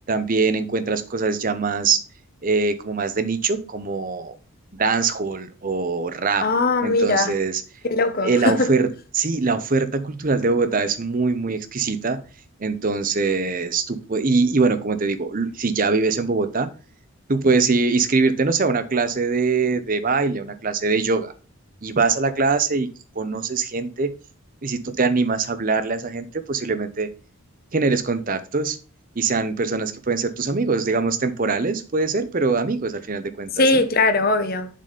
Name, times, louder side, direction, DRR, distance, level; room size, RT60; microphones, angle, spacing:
voice 1, 0.1-2.0 2.4-4.4 4.8-6.4 6.8-7.6 8.2-8.9 9.1-12.2 12.6-16.7 17.3-21.3 21.8-22.9 23.2-24.1 24.6-27.1 27.7-28.8 29.2-33.8, right 4 dB, 40° right, 0.7 m, -22 dB
voice 2, 6.4-7.4 7.9-8.7 33.6-34.7, left 2 dB, 40° left, 0.8 m, -20 dB
7.4 x 4.1 x 5.0 m
head